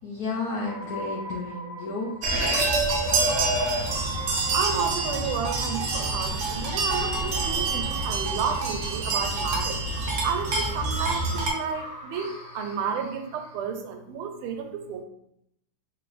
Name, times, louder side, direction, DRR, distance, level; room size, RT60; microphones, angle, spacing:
voice 1, 0.0-2.1, left 3 dB, 85° left, -3 dB, 0.8 m, -32 dB
sound 1, 0.6-13.7, right 1 dB, 35° right, 1.1 m, -42 dB
sound 2, 2.2-11.5, right 3 dB, 75° right, 1.4 m, -26 dB
voice 2, 4.5-9.8 10.2-12.3 12.5-15.0, right 6 dB, 90° right, 5 dB, 1.5 m, -31 dB
3.8 x 2.5 x 3.2 m, 0.77 s
omnidirectional pair, 2.3 m